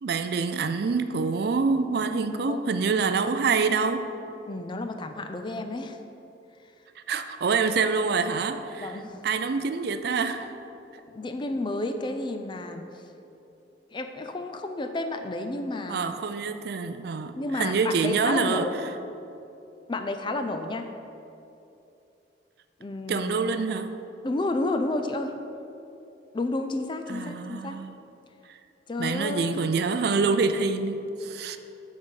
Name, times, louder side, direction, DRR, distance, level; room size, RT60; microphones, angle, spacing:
voice 1, 0.0-4.1 7.0-8.9 9.2-10.5 15.9-18.7 23.1-23.9 27.1-28.0 29.0-31.6, right 4 dB, 60° right, 10 dB, 0.4 m, -26 dB
voice 2, 2.3-2.6 4.5-6.0 8.8-9.2 11.1-13.0 13.9-16.0 17.3-18.8 19.9-20.9 22.8-23.3 24.2-25.4 26.3-27.8 28.9-29.6, left 2 dB, 25° left, 7 dB, 0.4 m, -31 dB
8.4 x 4.1 x 6.3 m, 2.8 s
head